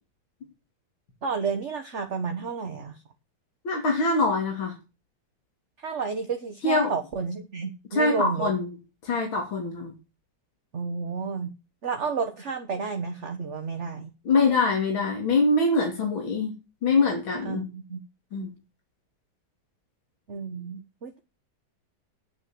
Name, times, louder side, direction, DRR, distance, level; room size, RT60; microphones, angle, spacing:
voice 1, 1.2-3.0 5.8-8.5 10.7-11.5 11.8-14.1 17.4-18.0 18.3-18.5 20.3-21.2, right 5 dB, 40° right, 5 dB, 1.5 m, -31 dB
voice 2, 3.7-4.7 6.6-6.9 7.9-8.7 9.0-9.9 14.3-16.5 16.8-17.6 18.3-18.5, left 3 dB, 80° left, 0 dB, 3.7 m, -24 dB
9.9 x 8.9 x 7.7 m, 0.30 s
omnidirectional pair, 2.2 m